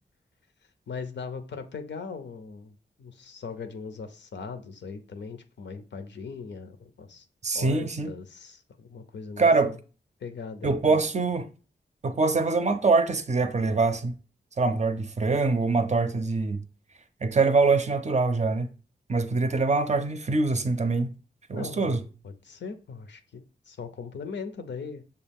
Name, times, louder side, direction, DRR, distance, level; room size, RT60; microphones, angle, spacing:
voice 1, 0.9-7.3 7.5-9.8 10.2-11.1 21.5-21.9 22.2-25.0, left 5 dB, 85° left, 0.6 m, -39 dB
voice 2, 7.4-8.1 9.4-9.8 10.6-11.5 12.0-14.1 14.6-16.6 17.2-18.7 19.1-21.1 21.5-22.0, right 3 dB, 40° right, 0.5 m, -24 dB
6.4 x 2.4 x 3.4 m
wide cardioid pair, 80°, 18 cm